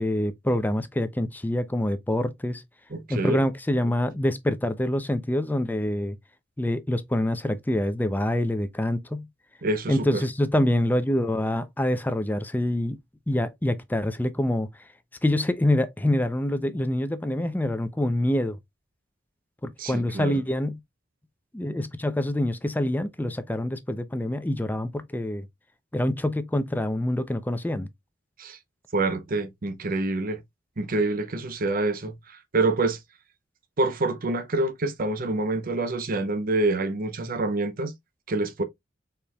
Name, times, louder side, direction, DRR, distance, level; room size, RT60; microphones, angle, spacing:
voice 1, 0.0-2.6 3.1-6.2 6.6-9.3 9.9-13.0 13.3-14.7 15.2-18.6 19.6-20.8 21.5-25.5 25.9-27.9, left 1 dB, 10° left, 0.5 m, -26 dB
voice 2, 2.9-3.4 9.6-10.2 19.8-20.4 28.4-28.6 28.9-30.4 30.8-33.0 33.8-37.9 38.3-38.6, right 2 dB, 45° right, 0.8 m, -27 dB
5.1 x 4.3 x 2.2 m
head